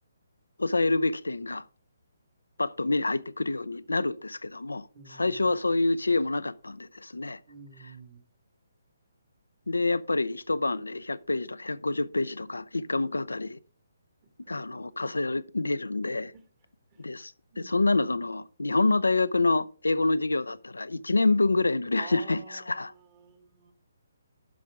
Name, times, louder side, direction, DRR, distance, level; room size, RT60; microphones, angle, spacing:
voice 1, 0.6-1.6 2.6-4.9 5.2-7.4 9.7-13.6 14.5-16.3 17.0-22.9, left 2 dB, 90° left, 0.4 m, -27 dB
voice 2, 4.9-5.5 7.5-8.2 14.2-14.5 16.3-16.5 16.9-17.1 17.5-18.0 21.9-23.7, right 5 dB, 30° right, 1.8 m, -50 dB
11.0 x 6.0 x 3.6 m
figure-of-eight pair, 145°, 0 cm